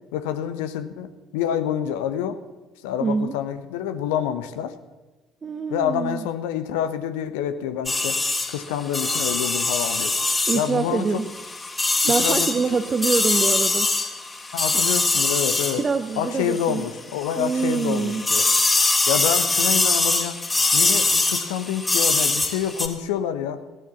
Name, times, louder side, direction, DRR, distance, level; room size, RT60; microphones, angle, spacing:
voice 1, 0.1-2.4 2.8-4.7 5.7-8.2 8.5-10.1 10.5-11.1 12.0-12.8 14.5-15.8 16.2-18.5 19.1-20.4 20.7-23.6, left 9 dB, 70° left, 10 dB, 0.9 m, -27 dB
voice 2, 3.0-3.4 5.4-6.3 10.5-11.3 12.1-14.2 15.8-16.8 17.4-18.2, right 5 dB, 35° right, 8 dB, 0.8 m, -25 dB
sound 1, 7.9-16.9 17.2-22.9, left 3 dB, 20° left, 2.8 m, -23 dB
15.5 x 11.0 x 7.1 m, 1.2 s
figure-of-eight pair, 50°, 0 cm